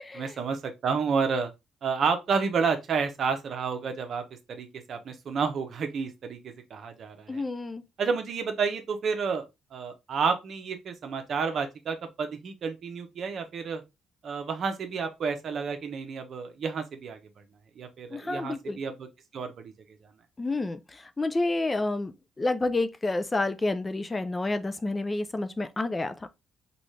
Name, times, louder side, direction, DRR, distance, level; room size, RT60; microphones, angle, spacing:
voice 1, 0.1-1.5 1.8-4.2 4.5-7.4 8.0-9.5 9.7-13.8 14.2-17.2 17.8-19.1 19.3-19.7, right 5 dB, 60° right, 0.8 m, -30 dB
voice 2, 7.3-7.8 18.1-18.8 20.4-22.1 22.4-26.1, left 2 dB, 20° left, 0.4 m, -29 dB
4.0 x 2.4 x 3.1 m
cardioid pair, 90°, 0 cm